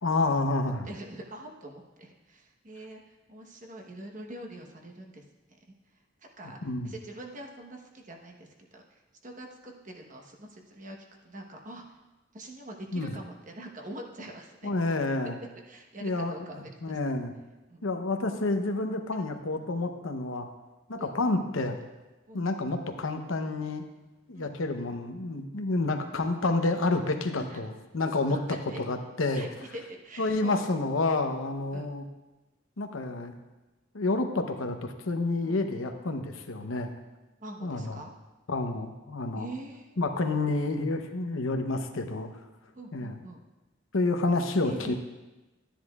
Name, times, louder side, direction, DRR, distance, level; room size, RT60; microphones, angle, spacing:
voice 1, 0.0-0.9 6.6-6.9 12.9-13.1 14.6-15.4 16.0-16.4 16.8-17.3 17.8-20.5 20.9-21.8 22.3-23.8 24.3-28.4 28.8-29.4 30.2-32.0 32.8-33.3 33.9-37.0 37.6-38.0 38.5-39.5 40.0-42.3 42.9-43.2 43.9-44.9, left 2 dB, 85° left, 5 dB, 0.8 m, -29 dB
voice 2, 0.8-5.2 6.4-11.0 11.2-12.0 12.3-14.7 15.7-17.0 17.7-17.9 19.1-19.2 21.0-21.1 22.3-22.5 24.3-24.6 27.4-27.6 28.5-28.8 29.3-30.7 31.7-31.9 35.4-35.6 37.4-38.1 39.4-40.0 42.7-43.4 44.6-44.9, right 1 dB, 40° right, 1 dB, 1.1 m, -44 dB
13.0 x 10.0 x 2.4 m, 1.1 s
head